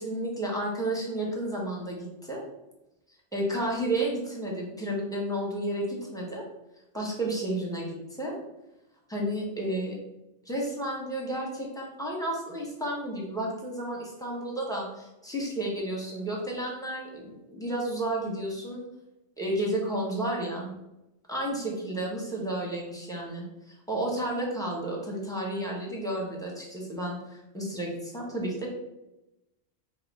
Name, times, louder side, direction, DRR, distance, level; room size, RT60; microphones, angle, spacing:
voice 1, 0.0-2.4 3.3-6.4 6.9-8.3 9.1-10.0 10.4-18.8 19.4-20.7 21.3-28.7, right 1 dB, 5° left, -3 dB, 1.0 m, -32 dB
3.6 x 3.1 x 4.6 m, 0.92 s
omnidirectional pair, 1.2 m